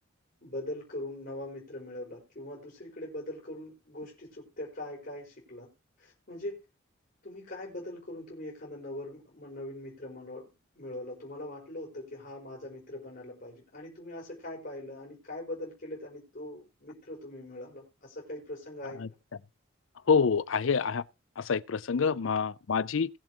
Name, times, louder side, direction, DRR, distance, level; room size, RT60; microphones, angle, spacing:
voice 1, 0.4-5.7 6.0-6.6 7.2-10.5 10.7-19.0 22.0-22.2, left 1 dB, 50° left, 4.5 m, -41 dB
voice 2, 20.1-21.0 21.4-23.1, left 5 dB, 75° left, 0.5 m, -26 dB
21.0 x 7.3 x 3.0 m
head